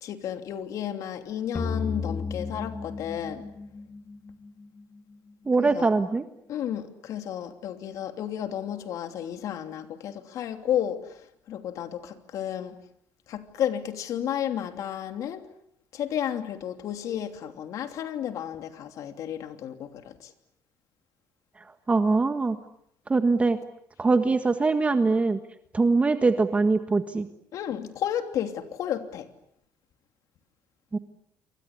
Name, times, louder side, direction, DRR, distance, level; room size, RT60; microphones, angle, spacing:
voice 1, 0.0-3.5 5.6-5.9 6.5-11.2 11.5-12.8 13.3-15.4 15.9-20.3 27.5-29.3, left 10 dB, 65° left, 3.0 m, -32 dB
sound 1, 1.5-4.8, left 4 dB, 25° left, 1.3 m, -33 dB
voice 2, 5.5-6.2 21.9-22.6 23.1-23.6 24.0-25.4 25.7-27.3 30.9-31.0, right 3 dB, 20° right, 1.5 m, -22 dB
28.0 x 24.5 x 8.4 m
cardioid pair, 120°, 6 cm